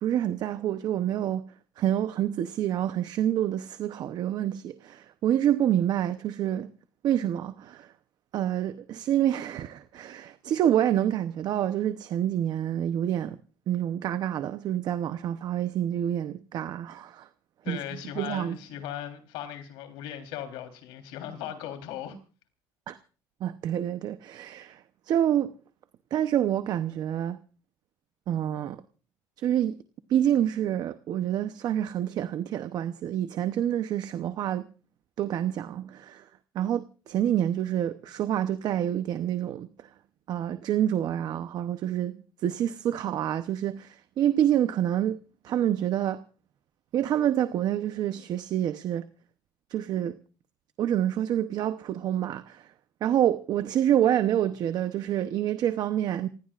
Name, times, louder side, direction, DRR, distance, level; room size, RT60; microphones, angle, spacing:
voice 1, 0.0-1.4 1.8-6.7 7.0-7.9 8.3-13.4 13.7-17.3 17.7-17.8 18.2-18.6 22.9-23.0 23.4-25.5 26.1-27.4 28.3-28.8 29.4-29.8 30.1-34.7 35.2-36.3 36.5-39.9 40.3-45.2 45.4-46.2 46.9-49.1 49.7-50.2 50.8-52.7 53.0-56.3, right 11 dB, 50° right, 0.8 m, -27 dB
voice 2, 17.6-22.2, left 10 dB, 90° left, 3.6 m, -38 dB
28.0 x 17.0 x 2.5 m
cardioid pair, 140°, 9 cm